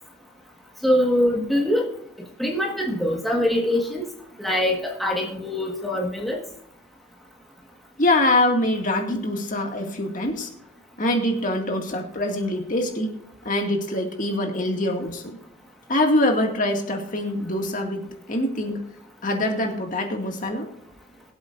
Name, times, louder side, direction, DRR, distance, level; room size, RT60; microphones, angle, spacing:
voice 1, 0.8-1.9 2.4-4.0 4.4-6.4, left 1 dB, ahead, -2 dB, 1.5 m, -23 dB
voice 2, 8.0-10.5 11.0-13.2 13.4-15.4 15.9-18.0 18.3-18.8 19.2-20.7, left 1 dB, 40° left, 2 dB, 2.1 m, -24 dB
22.5 x 8.0 x 2.6 m, 0.78 s
head